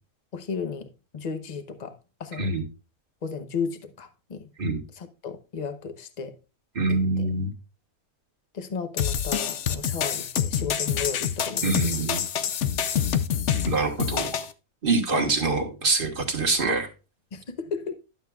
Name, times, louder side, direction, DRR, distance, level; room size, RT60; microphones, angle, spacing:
voice 1, 0.3-2.5 3.2-4.5 4.9-6.4 6.9-7.3 8.5-12.1 14.0-14.1 15.1-15.3 17.3-17.9, left 5 dB, 35° left, 0.9 m, -34 dB
voice 2, 6.8-7.5 11.6-12.2 13.7-14.4 14.8-16.9, right 3 dB, 40° right, 1.6 m, -25 dB
sound 1, 9.0-14.5, left 8 dB, 60° left, 0.9 m, -26 dB
12.0 x 7.3 x 2.4 m
omnidirectional pair, 1.5 m